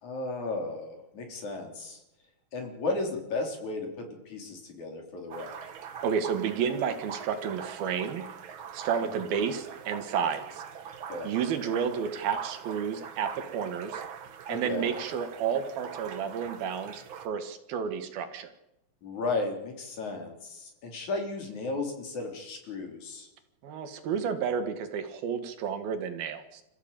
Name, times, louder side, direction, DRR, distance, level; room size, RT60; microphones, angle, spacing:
voice 1, 0.0-2.0 2.5-5.7 9.0-9.5 11.1-11.3 14.5-14.9 19.0-23.3, left 3 dB, 55° left, 3 dB, 5.1 m, -35 dB
sound 1, 5.3-17.3, right 7 dB, 65° right, 1.3 m, -42 dB
voice 2, 6.0-8.3 8.7-10.6 11.2-14.0 14.5-16.9 17.3-18.5 23.6-26.6, right 7 dB, 85° right, 9 dB, 3.7 m, -31 dB
27.5 x 14.5 x 8.9 m, 0.90 s
omnidirectional pair, 4.1 m